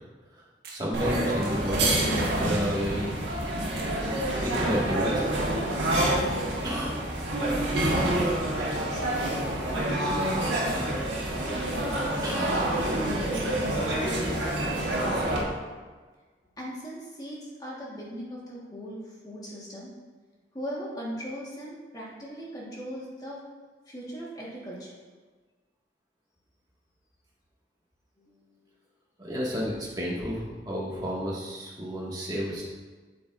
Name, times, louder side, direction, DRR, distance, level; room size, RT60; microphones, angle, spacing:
sound 1, 0.6-0.8 1.4-1.5 2.1-2.7 3.8-3.9 4.5-4.7 5.2-5.8, right 2 dB, 55° right, 1.4 m, -41 dB
voice 1, 0.7-3.1 4.4-5.3 6.6-7.0 12.2-12.5 29.2-32.6, equal, 20° right, -6 dB, 1.8 m, -31 dB
sound 2, 0.9-15.4, right 1 dB, 85° right, 1.6 m, -27 dB
voice 2, 8.9-15.5 16.6-19.9 20.5-23.4 23.9-24.9 28.2-28.6, equal, 20° left, -5 dB, 1.5 m, -39 dB
8.5 x 7.8 x 2.5 m, 1.4 s
head